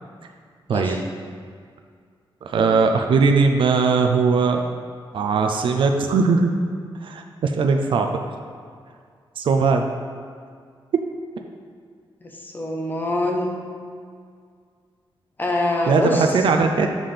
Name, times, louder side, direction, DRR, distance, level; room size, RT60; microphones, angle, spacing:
voice 1, 0.7-1.0 12.2-13.6 15.4-16.4, left 1 dB, 20° left, 0 dB, 0.8 m, -24 dB
voice 2, 2.4-4.6 5.1-6.5 7.0-8.1 9.4-9.8 15.9-16.9, right 4 dB, 65° right, 4 dB, 0.5 m, -19 dB
7.3 x 3.4 x 5.6 m, 2.1 s
wide cardioid pair, 175°, 9 cm